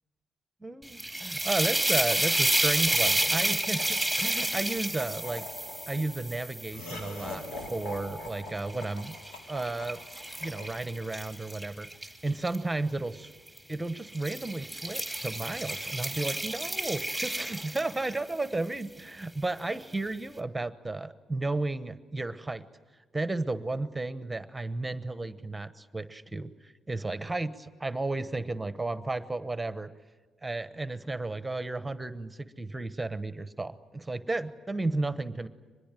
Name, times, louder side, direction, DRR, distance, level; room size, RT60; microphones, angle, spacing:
voice 1, 0.6-5.5 5.9-9.1 9.5-10.0 10.4-11.9 12.2-13.3 13.7-22.7 23.1-29.9 30.4-35.5, right 2 dB, 15° right, 12 dB, 1.0 m, -33 dB
sound 1, 0.8-8.0 8.6-12.6 13.5-13.7 14.1-18.3, right 1 dB, 5° left, 2.4 m, -30 dB
Laughter, 2.9-11.2, left 2 dB, 90° left, 3.1 m, -44 dB
24.5 x 21.0 x 9.1 m, 1.4 s
cardioid pair, 90°, 0 cm